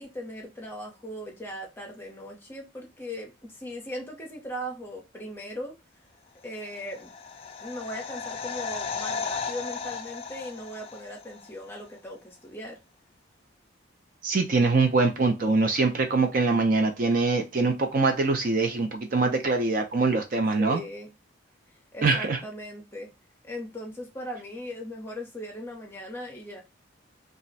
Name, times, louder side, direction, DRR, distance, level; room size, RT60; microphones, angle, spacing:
voice 1, 0.0-5.7 6.4-7.1 7.6-12.8 20.6-21.2 21.9-23.1 23.4-26.6, equal, 10° left, 0.7 m, -38 dB
sound 1, 6.6-11.5 11.8-11.9, left 5 dB, 30° left, 0.3 m, -35 dB
voice 2, 14.2-20.8 22.0-22.4, right 3 dB, 45° right, 0.4 m, -23 dB
2.4 x 2.1 x 3.9 m
head